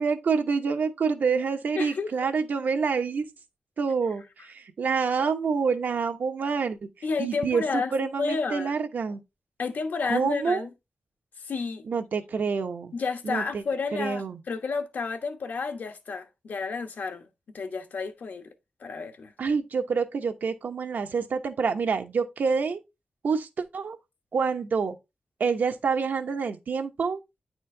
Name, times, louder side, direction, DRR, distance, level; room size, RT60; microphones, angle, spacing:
voice 1, 0.0-3.3 3.8-6.8 7.2-9.2 10.1-10.7 11.9-12.9 13.2-13.6 13.9-14.4 19.4-22.8 23.2-24.0 24.3-25.0 25.4-27.2, right 5 dB, 80° right, 1.0 m, -27 dB
voice 2, 1.8-2.3 7.0-8.7 9.6-10.7 11.4-11.8 12.9-17.3 17.5-18.5 18.8-19.3, left 4 dB, 75° left, 1.2 m, -31 dB
9.6 x 4.4 x 3.3 m
wide cardioid pair, 175°, 3 cm